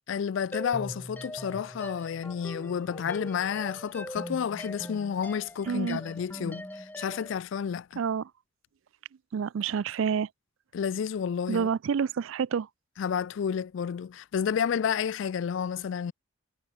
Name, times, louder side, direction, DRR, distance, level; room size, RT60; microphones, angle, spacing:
voice 1, 0.1-8.0 10.7-11.7 13.0-16.1, left 7 dB, 60° left, 0.3 m, -31 dB
sound 1, 0.5-7.4, equal, 10° left, 3.4 m, -41 dB
voice 2, 5.7-6.0 8.0-8.3 9.3-10.3 11.5-12.7, right 7 dB, 70° right, 0.4 m, -28 dB
head